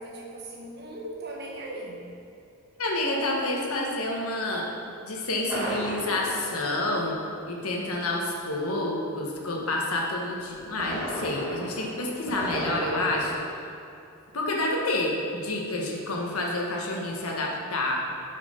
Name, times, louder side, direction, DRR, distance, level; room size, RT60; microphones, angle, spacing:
voice 1, 0.0-2.1, right 1 dB, 50° right, -1 dB, 1.2 m, -38 dB
voice 2, 2.8-4.7 5.0-7.2 7.5-13.4 14.3-18.0, left 2 dB, 85° left, -1 dB, 1.4 m, -29 dB
sound 1, 5.5-7.6 10.5-13.3, right 1 dB, 10° right, 1.7 m, -34 dB
8.2 x 5.9 x 5.1 m, 2.7 s
head